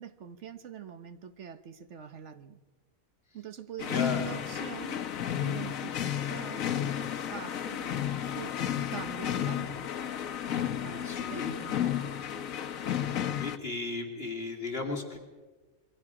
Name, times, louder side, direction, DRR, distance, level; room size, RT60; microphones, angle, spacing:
voice 1, 0.0-2.6 3.3-5.0 5.4-7.9 8.3-8.5 8.9-9.9 10.8-12.1, right 8 dB, 60° right, 10 dB, 1.3 m, -44 dB
sound 1, 3.8-13.6, left 10 dB, 85° left, 1.4 m, -32 dB
voice 2, 3.9-4.3 11.0-11.5 13.4-15.2, left 3 dB, 45° left, 1 dB, 2.9 m, -35 dB
27.5 x 22.5 x 5.0 m, 1.3 s
omnidirectional pair, 1.4 m